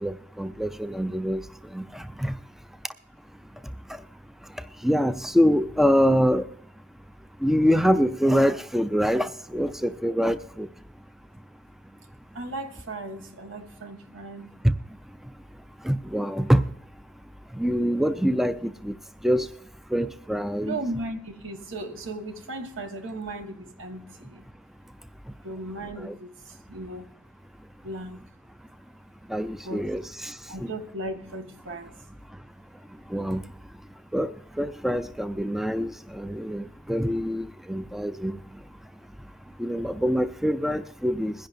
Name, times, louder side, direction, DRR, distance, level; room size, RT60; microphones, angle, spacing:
voice 1, 0.0-1.4 1.7-2.3 4.8-6.4 7.4-10.7 15.8-16.6 17.6-18.9 19.2-19.5 19.9-20.8 26.0-26.1 29.3-30.3 33.1-33.4 34.1-38.4 39.6-41.3, equal, ahead, 0.3 m, -25 dB
voice 2, 12.3-14.5 20.6-24.4 25.4-27.1 27.8-28.2 29.6-29.9 30.5-32.0, right 2 dB, 80° right, 1.5 m, -36 dB
21.5 x 10.5 x 2.6 m
head